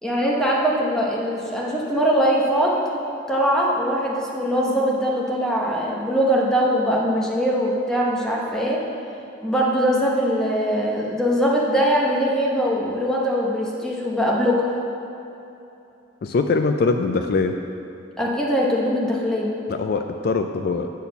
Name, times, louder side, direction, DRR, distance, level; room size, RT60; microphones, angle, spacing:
voice 1, 0.0-2.7 3.3-8.8 9.4-14.7 18.2-19.5, equal, 5° left, -3 dB, 0.9 m, -21 dB
voice 2, 16.2-17.6 19.7-20.9, left 4 dB, 55° left, 6 dB, 0.3 m, -22 dB
8.4 x 4.1 x 6.9 m, 2.9 s
head